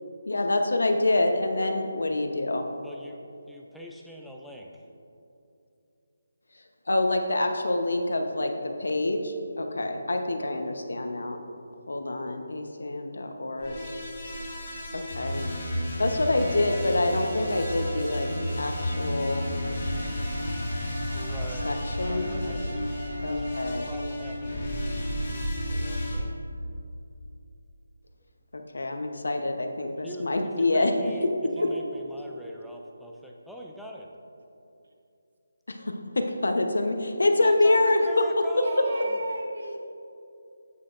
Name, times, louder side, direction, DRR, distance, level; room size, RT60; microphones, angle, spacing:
voice 1, 0.3-2.6 6.5-11.4 11.9-13.8 14.9-15.5 16.0-18.3 18.6-19.5 21.6-22.6 23.2-23.9 28.5-30.9 35.7-38.2 38.6-38.7, left 2 dB, 90° left, 5 dB, 0.9 m, -26 dB
voice 2, 2.8-4.8 21.1-22.8 23.3-26.4 30.0-31.2 31.6-34.1 37.4-39.2, equal, ahead, -2 dB, 0.3 m, -44 dB
sound 1, 13.6-26.2, left 1 dB, 25° left, 1.5 m, -32 dB
Bowed string instrument, 16.4-23.8, right 1 dB, 40° right, 1.1 m, -44 dB
voice 3, 31.5-31.9 38.5-39.8, right 1 dB, 65° right, 2 dB, 1.1 m, -36 dB
9.4 x 8.4 x 2.5 m, 2.7 s
hypercardioid pair, 175°, 0 cm